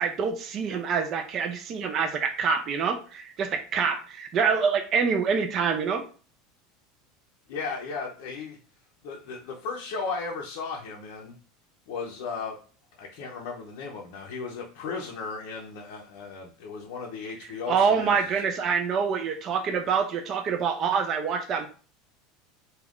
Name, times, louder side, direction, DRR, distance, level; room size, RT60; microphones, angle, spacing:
voice 1, 0.0-6.0 17.7-21.7, right 6 dB, 35° right, 6 dB, 0.3 m, -26 dB
voice 2, 7.5-8.6 9.0-11.4 11.9-12.6 13.0-18.2, left 4 dB, 65° left, -1 dB, 0.5 m, -35 dB
2.4 x 2.2 x 3.4 m, 0.39 s
supercardioid pair, 155°, 0 cm